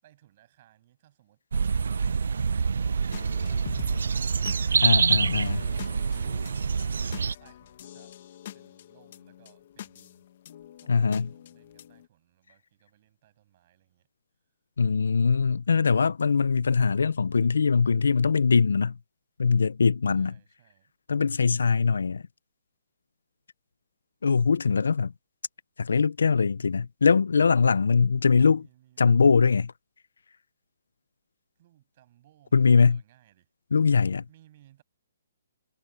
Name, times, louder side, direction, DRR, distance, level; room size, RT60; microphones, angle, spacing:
voice 1, 0.0-1.4 6.1-8.2 8.5-10.3 10.8-14.1 20.1-20.9 27.5-27.8 28.2-29.0 31.6-33.5 34.3-34.8, right 13 dB, 30° right, 7.7 m, -61 dB
sound 1, 1.5-7.4, right 5 dB, 70° right, 0.4 m, -26 dB
sound 2, 3.1-12.1, left 11 dB, 35° left, 1.2 m, -44 dB
voice 2, 4.8-5.6 10.9-11.3 14.8-19.0 19.4-20.3 21.1-22.2 24.2-25.1 25.8-28.6 29.0-29.7 32.5-33.0 33.7-34.2, left 5 dB, 85° left, 0.6 m, -22 dB
hypercardioid pair, 175°, 0 cm